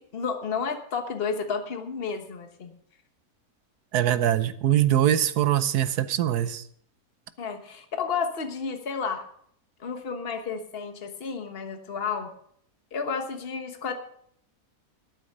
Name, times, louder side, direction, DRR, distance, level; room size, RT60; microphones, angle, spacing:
voice 1, 0.0-2.7 7.4-9.3 9.8-12.3 12.9-13.9, left 5 dB, 40° left, 6 dB, 1.4 m, -31 dB
voice 2, 3.9-6.6, right 11 dB, 80° right, 13 dB, 1.3 m, -23 dB
12.0 x 9.3 x 6.5 m, 0.64 s
omnidirectional pair, 1.7 m